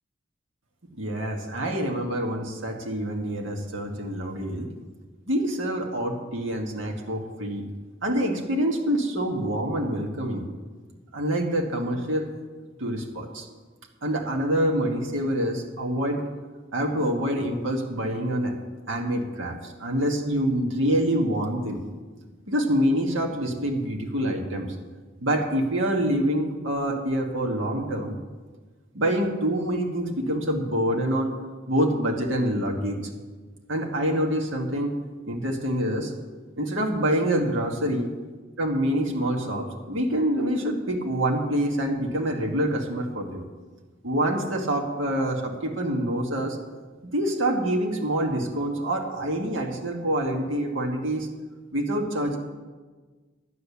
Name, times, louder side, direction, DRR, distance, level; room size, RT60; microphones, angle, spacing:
voice 1, 1.0-4.7 5.3-7.6 8.0-10.5 11.1-12.3 12.8-13.5 14.0-16.2 16.7-18.5 18.9-21.8 22.5-24.7 25.2-28.2 28.9-31.3 31.7-33.0 33.7-34.9 35.3-36.1 36.6-38.1 38.6-43.4 44.0-46.6 47.0-51.3 51.7-52.4, right 1 dB, 80° right, 2 dB, 1.6 m, -26 dB
12.0 x 8.4 x 7.1 m, 1.4 s
head